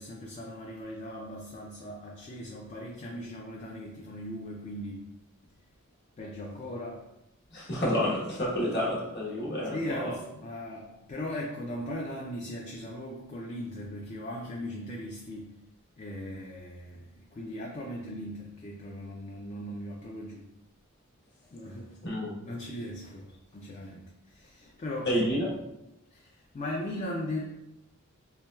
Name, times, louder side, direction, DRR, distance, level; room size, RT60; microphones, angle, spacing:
voice 1, 0.0-5.1 6.2-7.0 8.3-8.5 9.7-15.5 16.0-20.5 21.5-22.0 22.4-25.2 26.1-27.4, left 1 dB, 35° left, -1 dB, 0.4 m, -38 dB
voice 2, 7.5-10.2 22.0-22.3 25.0-25.5, equal, 50° left, -4 dB, 1.1 m, -29 dB
4.4 x 3.0 x 2.3 m, 0.90 s
head